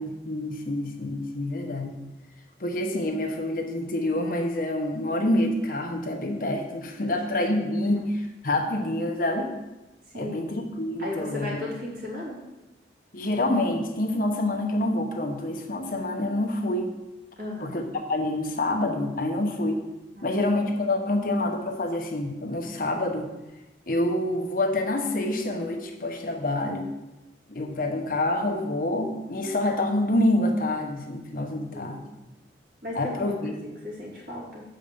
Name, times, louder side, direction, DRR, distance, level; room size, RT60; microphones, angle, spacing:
voice 1, 0.0-2.0 2.6-9.5 10.1-11.6 13.1-17.0 17.6-19.8 20.2-23.3 23.9-26.9 27.5-32.0 32.9-33.6, left 1 dB, 50° left, 3 dB, 1.0 m, -27 dB
voice 2, 11.0-12.4 17.4-17.7 20.1-20.4 31.7-32.0 32.8-34.6, left 1 dB, 50° right, -4 dB, 2.8 m, -36 dB
6.8 x 5.2 x 6.9 m, 1.0 s
head